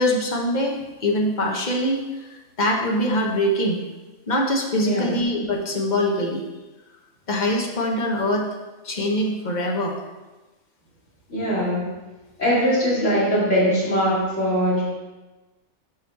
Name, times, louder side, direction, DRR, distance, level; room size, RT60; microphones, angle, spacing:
voice 1, 0.0-3.8 4.3-6.4 7.3-8.5 8.8-9.9, left 1 dB, 40° left, 0 dB, 1.0 m, -23 dB
voice 2, 4.8-5.1 11.3-11.8 12.4-14.8, equal, 70° left, -8 dB, 2.8 m, -21 dB
5.7 x 4.8 x 4.6 m, 1.1 s
omnidirectional pair, 1.3 m